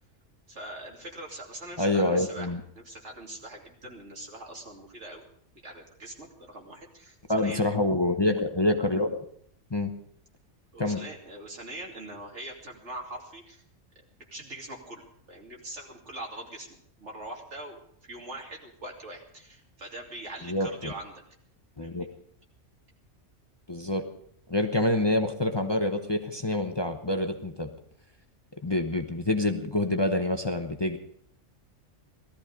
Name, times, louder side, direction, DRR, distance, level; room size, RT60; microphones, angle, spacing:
voice 1, 0.5-2.5 2.7-5.3 5.6-7.7 10.7-13.6 14.3-16.7 17.0-21.1 21.8-22.1, right 1 dB, 70° right, 0 dB, 3.1 m, -42 dB
voice 2, 1.8-2.6 7.3-9.1 9.7-9.9 10.8-11.0 20.4-20.9 21.8-22.0 23.7-24.0 24.5-27.7 28.6-31.0, left 1 dB, 25° left, 5 dB, 0.9 m, -26 dB
18.0 x 13.5 x 5.1 m, 0.67 s
omnidirectional pair, 1.3 m